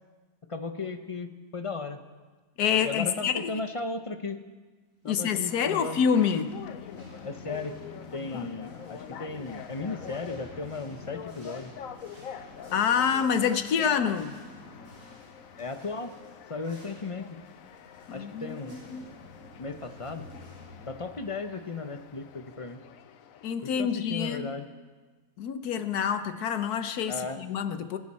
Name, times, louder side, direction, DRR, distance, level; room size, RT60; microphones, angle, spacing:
voice 1, 0.5-2.0 2.8-4.4 5.0-6.0 7.2-7.7 8.1-11.7 15.6-16.1 16.5-17.4 18.1-18.8 19.6-20.2 20.9-22.8 23.6-24.7 27.1-27.4, left 3 dB, 35° left, 8 dB, 0.5 m, -36 dB
voice 2, 2.6-3.6 5.0-6.5 8.3-8.5 12.7-14.4 18.1-19.1 23.4-24.5 25.4-28.0, left 7 dB, 90° left, 10 dB, 1.4 m, -27 dB
sound 1, 5.2-22.6, equal, 65° right, 6.6 m, -51 dB
sound 2, 5.4-23.6, left 8 dB, 70° left, 1.1 m, -45 dB
24.5 x 12.0 x 4.3 m, 1.3 s
omnidirectional pair, 1.6 m